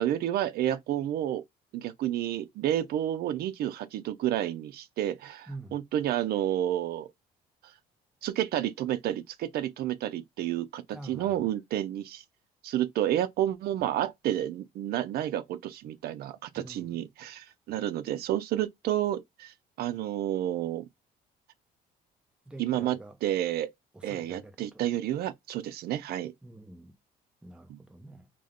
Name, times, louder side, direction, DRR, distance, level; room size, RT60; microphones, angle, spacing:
voice 1, 0.0-1.4 1.7-7.1 7.6-7.7 8.2-12.2 12.6-20.8 22.6-23.7 24.0-26.3 27.7-27.8, right 12 dB, 65° right, 0.5 m, -30 dB
voice 2, 10.9-11.3 16.5-17.0 22.5-23.2 23.9-24.8 26.4-27.0 27.4-28.3, right 2 dB, 5° right, 0.5 m, -46 dB
2.3 x 2.1 x 3.4 m
cardioid pair, 110°, 17 cm